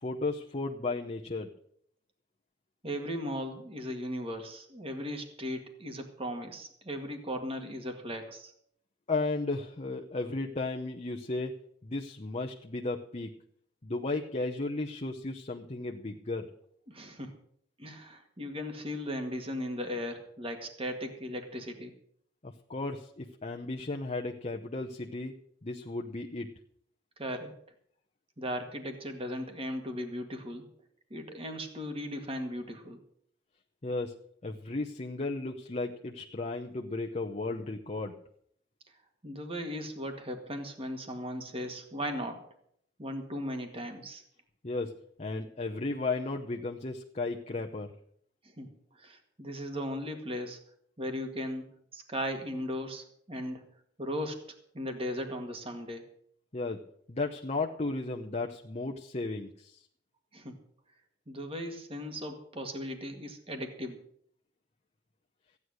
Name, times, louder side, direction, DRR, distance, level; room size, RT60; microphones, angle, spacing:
voice 1, 0.0-1.5 9.1-13.4 13.8-16.5 22.4-25.3 25.6-26.5 33.8-38.2 44.6-47.9 56.5-59.8, left 3 dB, 35° left, 2 dB, 0.8 m, -35 dB
voice 2, 2.8-8.5 16.9-17.4 17.8-21.9 27.2-27.5 28.4-30.6 31.1-33.0 39.2-42.4 43.0-44.2 48.4-48.7 49.0-50.6 51.0-51.6 51.9-53.7 54.0-54.4 54.7-56.0 60.3-60.6 61.3-64.0, equal, 30° right, 5 dB, 1.9 m, -37 dB
15.0 x 9.7 x 6.4 m, 0.66 s
head